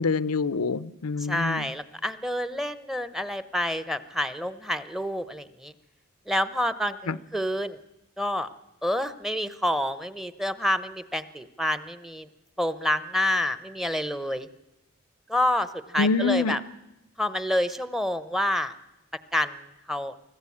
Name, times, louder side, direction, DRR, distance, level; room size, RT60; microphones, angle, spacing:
voice 1, 0.0-1.7 7.1-7.2 16.0-16.6, left 4 dB, 85° left, 16 dB, 0.7 m, -25 dB
voice 2, 1.3-5.7 6.3-7.8 8.2-8.5 8.8-12.3 12.6-14.5 15.3-16.6 17.2-18.7 19.3-19.6 19.9-20.1, left 1 dB, ahead, 14 dB, 0.8 m, -28 dB
24.5 x 14.5 x 8.5 m, 0.92 s
head